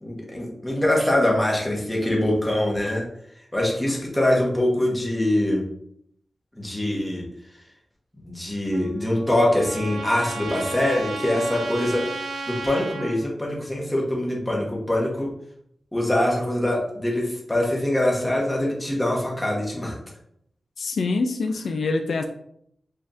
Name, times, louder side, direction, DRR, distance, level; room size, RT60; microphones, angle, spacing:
voice 1, 0.0-3.0 3.5-5.6 6.6-7.2 8.2-12.0 12.5-15.3 15.9-20.0, left 1 dB, 10° left, -3 dB, 1.3 m, -23 dB
Trumpet, 8.7-13.2, right 3 dB, 85° right, 0.6 m, -34 dB
voice 2, 20.8-22.3, left 3 dB, 75° left, 4 dB, 0.4 m, -25 dB
5.5 x 3.5 x 2.7 m, 0.71 s
wide cardioid pair, 135°, 0 cm